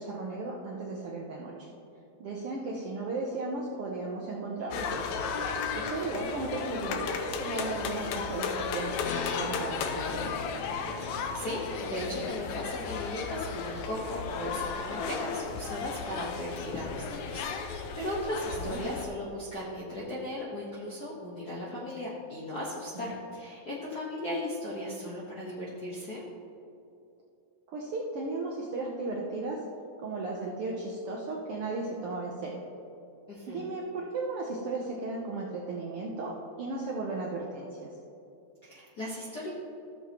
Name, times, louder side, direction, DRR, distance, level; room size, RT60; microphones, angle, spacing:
voice 1, 0.0-1.7 2.2-5.0 5.4-8.9 9.4-10.4 18.6-18.9 22.9-23.1 27.7-29.6 30.0-32.6 33.5-38.0, right 3 dB, 75° right, -2 dB, 1.3 m, -35 dB
sound 1, 4.7-19.1, left 5 dB, 75° left, 1.9 m, -34 dB
voice 2, 11.0-26.2 33.3-33.7 38.6-39.5, left 1 dB, 60° left, -6 dB, 1.0 m, -37 dB
14.5 x 7.1 x 3.0 m, 2.7 s
omnidirectional pair, 3.6 m